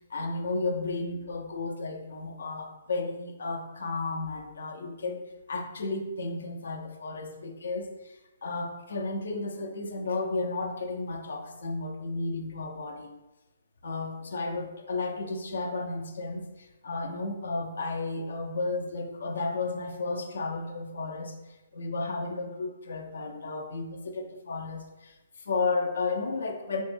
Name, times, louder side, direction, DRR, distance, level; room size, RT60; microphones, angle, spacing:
voice 1, 0.0-13.1 13.8-21.4 21.7-26.8, left 3 dB, 75° left, 4 dB, 0.5 m, -33 dB
3.5 x 2.1 x 3.2 m, 1.0 s
hypercardioid pair, 140°, 0 cm